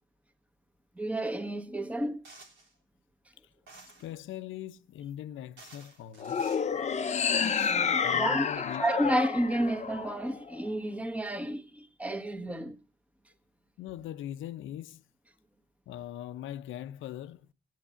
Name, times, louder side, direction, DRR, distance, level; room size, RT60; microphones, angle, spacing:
voice 1, 1.0-2.2 7.4-12.8, right 1 dB, 5° right, 1.4 m, -31 dB
sound 1, 2.2-2.7 3.7-4.1 5.1-5.2 5.6-6.7 7.3-7.7, right 3 dB, 80° right, 3.6 m, -52 dB
voice 2, 4.0-6.5 8.0-8.8 13.8-15.0 15.9-17.5, left 12 dB, 80° left, 0.8 m, -41 dB
sound 2, 6.2-10.6, left 6 dB, 35° left, 0.8 m, -29 dB
16.5 x 9.4 x 5.7 m
cardioid pair, 90°, 20 cm